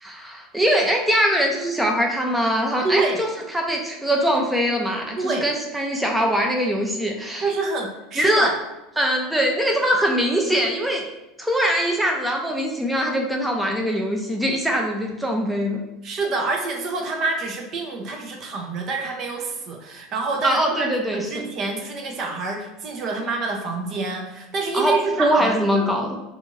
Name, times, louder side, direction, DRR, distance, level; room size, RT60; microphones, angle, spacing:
voice 1, 0.0-7.5 8.2-8.5 9.0-11.0 11.4-15.8 20.4-21.3 24.7-26.2, equal, 5° right, 0 dB, 0.5 m, -22 dB
voice 2, 2.8-3.2 5.2-5.5 7.4-8.5 16.0-25.9, right 3 dB, 45° right, 2 dB, 0.6 m, -27 dB
2.5 x 2.4 x 3.0 m, 0.94 s
hypercardioid pair, 95°, 0 cm